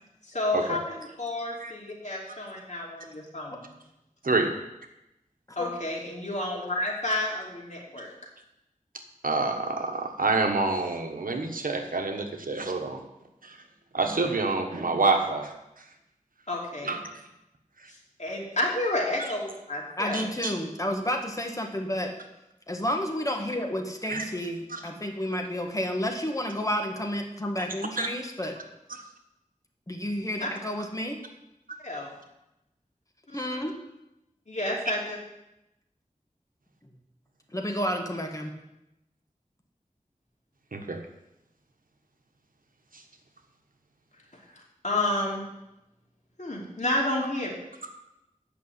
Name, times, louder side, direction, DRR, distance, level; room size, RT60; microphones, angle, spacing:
voice 1, 0.2-3.7 5.6-8.1 16.5-17.0 17.9-20.2 30.4-30.5 31.8-32.1 33.3-33.6 34.5-35.2 44.3-45.4 46.4-47.5, left 1 dB, 60° left, -2 dB, 2.7 m, -31 dB
voice 2, 9.2-13.0 13.4-13.6 13.9-15.5 16.8-17.0 20.1-20.5 24.1-24.2 24.7-24.8 28.0-28.1 40.7-41.0 42.9-43.0, right 3 dB, 85° right, 4 dB, 1.2 m, -27 dB
voice 3, 20.0-22.1 22.7-28.5 29.9-31.2 33.3-33.8 37.5-38.5, equal, 25° left, 2 dB, 1.6 m, -30 dB
8.4 x 6.1 x 8.2 m, 0.90 s
wide cardioid pair, 60°, 14 cm